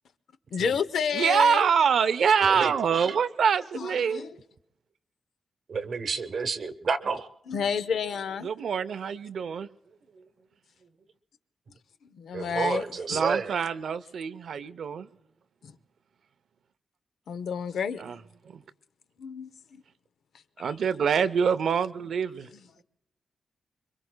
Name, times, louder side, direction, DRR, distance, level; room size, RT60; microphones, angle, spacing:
voice 1, 0.5-1.7 2.6-2.7 3.7-4.3 7.5-8.5 12.1-12.8 13.1-13.2 15.6-15.7 17.3-18.0 19.2-19.8 20.6-20.7, left 7 dB, 80° left, 0.7 m, -30 dB
voice 2, 1.1-4.2 8.4-9.7 13.1-15.1 18.0-18.2 18.5-18.6 20.6-22.5, right 7 dB, 70° right, 0.5 m, -25 dB
voice 3, 2.4-3.1 5.7-7.3 12.3-13.7, right 5 dB, 50° right, 0.9 m, -30 dB
26.5 x 23.5 x 2.2 m
wide cardioid pair, 150°, 0 cm